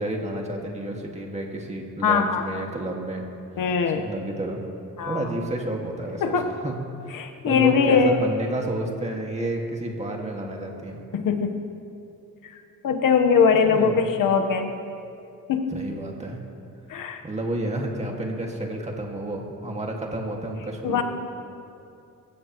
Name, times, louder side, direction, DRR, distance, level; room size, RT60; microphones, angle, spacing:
voice 1, 0.0-3.2 3.9-4.6 5.1-11.0 13.5-13.9 15.7-16.4 17.2-21.0, right 1 dB, 20° right, 0 dB, 1.9 m, -30 dB
voice 2, 2.0-2.6 3.6-4.0 5.0-5.2 6.2-6.5 7.1-8.2 11.1-11.6 12.8-14.7 15.5-15.7 16.9-17.2 20.8-21.0, left 6 dB, 75° left, 6 dB, 1.2 m, -21 dB
26.0 x 15.5 x 3.0 m, 2.7 s
cardioid pair, 145°, 33 cm